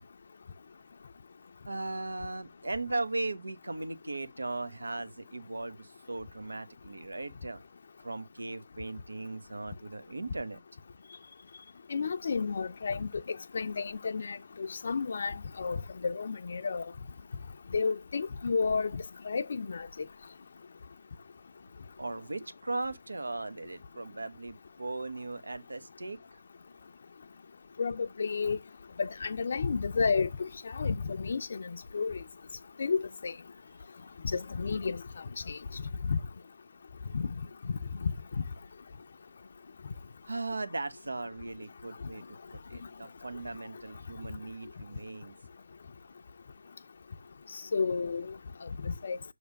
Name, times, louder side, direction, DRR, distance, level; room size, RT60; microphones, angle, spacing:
voice 1, 1.7-7.6 8.0-10.6 22.0-26.2 40.3-42.4 42.7-45.3, right 2 dB, 85° right, 1.2 m, -38 dB
voice 2, 11.9-15.8 16.0-16.8 17.7-19.9 27.8-28.6 29.0-32.2 32.8-33.3 34.2-35.0 35.5-35.8 36.1-36.2 37.1-37.3 38.0-38.1 47.5-48.3 48.6-49.2, left 5 dB, 45° left, 0.4 m, -31 dB
7.0 x 3.3 x 5.1 m
figure-of-eight pair, 165°, 0 cm